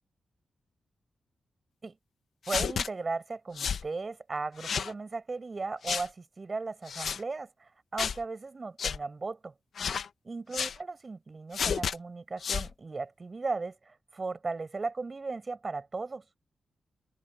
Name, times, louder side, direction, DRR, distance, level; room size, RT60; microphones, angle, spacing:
sound 1, 2.5-2.9 3.6-3.8 4.6-4.9 5.8-6.1 6.9-7.2 8.0-8.2 8.8-9.0 9.8-10.1 10.5-10.8 11.5-12.0 12.4-12.7, left 6 dB, 70° left, 1.1 m, -31 dB
voice 1, 2.5-9.5 10.2-16.2, right 3 dB, 30° right, 5.2 m, -36 dB
wide cardioid pair, 120°, 0 cm